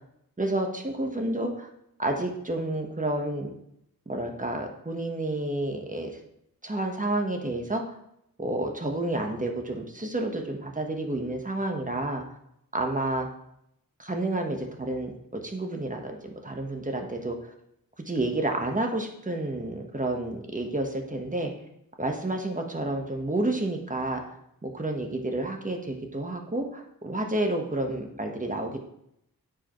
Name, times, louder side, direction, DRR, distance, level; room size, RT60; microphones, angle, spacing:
voice 1, 0.4-1.7 2.0-3.5 4.1-6.1 6.6-7.9 8.4-12.2 12.7-13.3 14.0-16.2 16.4-17.5 18.1-21.5 22.0-24.2 24.6-28.8, right 2 dB, 20° right, 3 dB, 1.3 m, -30 dB
9.4 x 4.9 x 3.2 m, 0.77 s
cardioid pair, 55°, 36 cm